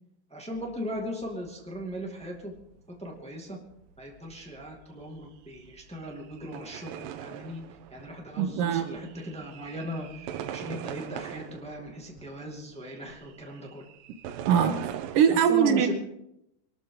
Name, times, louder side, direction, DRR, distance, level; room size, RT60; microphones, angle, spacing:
voice 1, 0.3-2.5 3.0-3.6 4.0-13.8 15.5-15.9, equal, 5° left, -1 dB, 0.5 m, -38 dB
sound 1, 0.5-15.3, right 10 dB, 90° right, 3.1 m, -42 dB
voice 2, 8.4-8.8 14.4-14.8 15.1-15.9, right 8 dB, 65° right, 7 dB, 2.6 m, -22 dB
24.0 x 13.0 x 3.9 m, 0.79 s
omnidirectional pair, 4.8 m